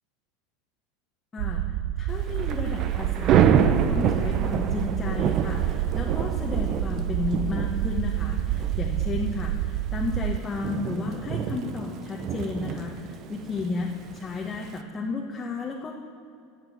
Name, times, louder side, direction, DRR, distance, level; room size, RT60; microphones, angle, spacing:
voice 1, 1.3-15.9, left 4 dB, 25° left, -1 dB, 1.4 m, -33 dB
sound 1, 1.4-10.4, right 13 dB, 60° right, 0.3 m, -28 dB
Thunder / Rain, 2.2-14.8, right 8 dB, 45° right, 0.7 m, -28 dB
11.5 x 6.7 x 7.9 m, 2.4 s
hypercardioid pair, 80°, 0 cm